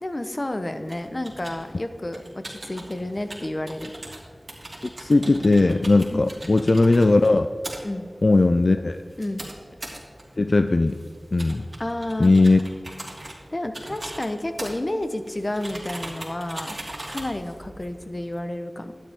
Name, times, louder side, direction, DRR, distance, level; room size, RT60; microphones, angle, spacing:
voice 1, 0.0-3.9 6.1-6.2 7.8-8.1 9.2-9.4 11.8-12.3 13.5-16.8 17.1-18.9, left 1 dB, 40° left, 8 dB, 0.8 m, -30 dB
sound 1, 0.9-18.4, right 1 dB, 50° right, 2.6 m, -41 dB
voice 2, 5.0-7.5 8.2-9.0 10.4-11.0 11.3-11.6 12.2-12.6, left 2 dB, 65° left, 8 dB, 0.4 m, -18 dB
12.0 x 10.0 x 3.5 m, 2.1 s
wide cardioid pair, 60°, 0 cm